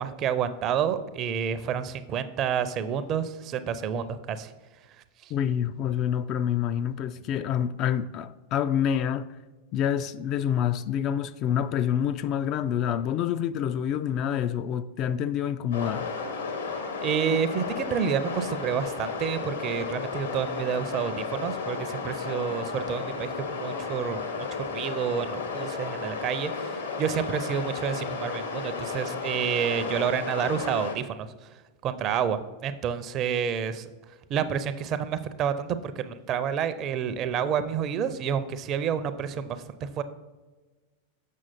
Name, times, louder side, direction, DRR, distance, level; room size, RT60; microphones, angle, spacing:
voice 1, 0.0-4.5 5.2-5.3 17.0-31.3 31.8-33.9 34.3-40.0, right 8 dB, 35° right, 0.5 m, -29 dB
voice 2, 5.3-9.3 9.7-16.1, left 9 dB, 35° left, 0.3 m, -27 dB
sound 1, 15.7-31.0, left 5 dB, 70° left, 1.0 m, -33 dB
7.4 x 6.1 x 4.1 m
figure-of-eight pair, 90°, 0 cm